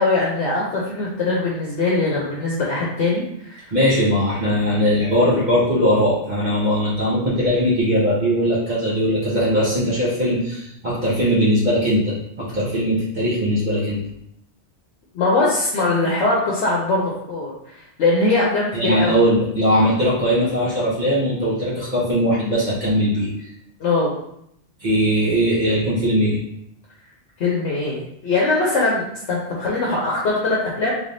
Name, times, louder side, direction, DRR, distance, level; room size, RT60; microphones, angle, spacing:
voice 1, 0.0-3.7 15.1-19.2 23.8-24.2 27.4-30.9, left 3 dB, 80° left, -4 dB, 1.0 m, -21 dB
voice 2, 3.7-14.0 18.7-23.3 24.8-26.4, equal, 45° right, -8 dB, 1.0 m, -20 dB
3.4 x 3.2 x 2.6 m, 0.76 s
omnidirectional pair, 1.2 m